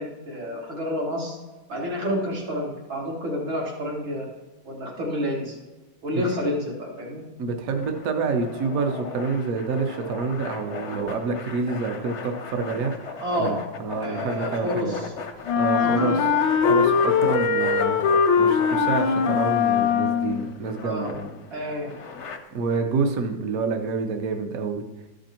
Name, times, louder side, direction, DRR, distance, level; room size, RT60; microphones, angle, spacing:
voice 1, 0.0-1.4 1.7-4.3 4.6-5.5 6.0-7.2 13.2-13.6 14.0-15.0 15.8-16.2 20.8-21.1 21.5-21.9, equal, 80° right, -3 dB, 3.0 m, -29 dB
voice 2, 7.4-12.9 13.4-15.1 15.6-16.2 16.7-18.0 18.4-21.3 22.5-24.8, right 4 dB, 55° right, 5 dB, 1.1 m, -27 dB
sound 1, 7.7-22.4, left 5 dB, 55° left, 0.8 m, -37 dB
Wind instrument woodwind instrument, 15.4-20.5, left 6 dB, 75° left, 1.4 m, -21 dB
13.0 x 5.3 x 4.4 m, 1.2 s
omnidirectional pair, 2.2 m